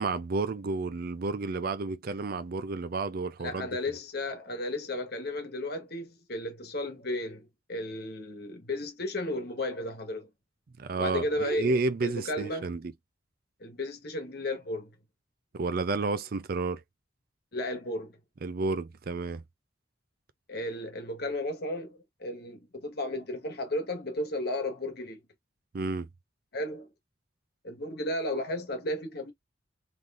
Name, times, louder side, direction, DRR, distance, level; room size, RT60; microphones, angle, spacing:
voice 1, 0.0-3.7 10.8-12.8 15.5-16.8 18.4-19.4 25.7-26.1, right 3 dB, 50° right, 0.4 m, -31 dB
voice 2, 3.4-10.3 11.0-12.7 13.6-14.9 17.5-18.2 20.5-25.2 26.5-26.9 27.6-29.3, left 1 dB, 60° left, 1.3 m, -34 dB
3.9 x 3.2 x 2.5 m
head